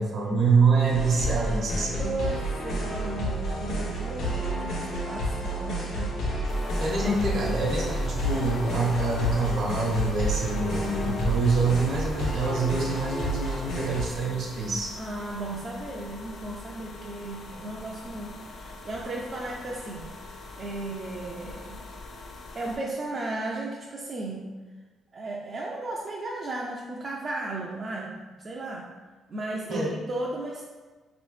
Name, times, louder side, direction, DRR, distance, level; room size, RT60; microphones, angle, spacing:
voice 1, 0.0-2.2 6.8-14.9 29.7-29.9, right 4 dB, 65° right, -2 dB, 0.9 m, -26 dB
sound 1, 0.9-14.0, equal, 90° left, 1.2 m, -30 dB
voice 2, 1.8-6.2 7.0-7.1 15.0-21.8 22.5-24.5 25.1-28.9 29.3-30.6, right 2 dB, 40° right, -2 dB, 0.4 m, -35 dB
sound 2, 6.5-22.8, left 2 dB, 65° left, 0.5 m, -43 dB
3.4 x 3.0 x 3.2 m, 1.3 s
cardioid pair, 90°, 0 cm